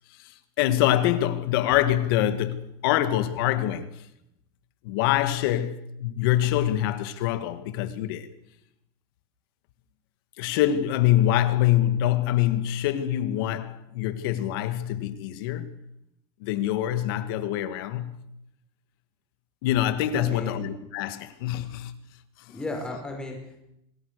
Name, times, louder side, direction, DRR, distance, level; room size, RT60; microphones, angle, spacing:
voice 1, 0.2-3.9 4.8-8.3 10.4-15.8 16.4-18.2 19.6-21.9 22.5-22.6, left 12 dB, 60° left, 2.0 m, -25 dB
voice 2, 20.1-20.5 22.5-23.6, left 2 dB, 5° left, 5.1 m, -34 dB
27.0 x 18.5 x 6.8 m
supercardioid pair, 175°, 14 cm